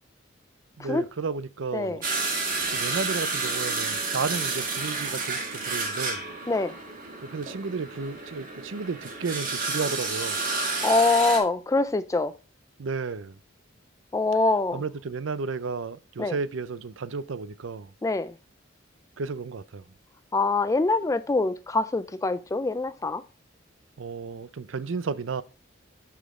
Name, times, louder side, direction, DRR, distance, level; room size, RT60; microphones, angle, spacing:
voice 1, 0.8-2.0 2.7-6.3 7.2-10.4 12.8-13.3 14.7-17.9 19.2-19.8 24.0-25.4, right 4 dB, 80° right, 0.6 m, -33 dB
sound 1, 2.0-11.4, right 3 dB, 45° right, 2.0 m, -30 dB
voice 2, 10.8-12.3 14.1-14.8 16.2-16.3 18.0-18.3 20.3-23.2, left 3 dB, 15° left, 0.3 m, -24 dB
8.3 x 6.0 x 3.6 m
head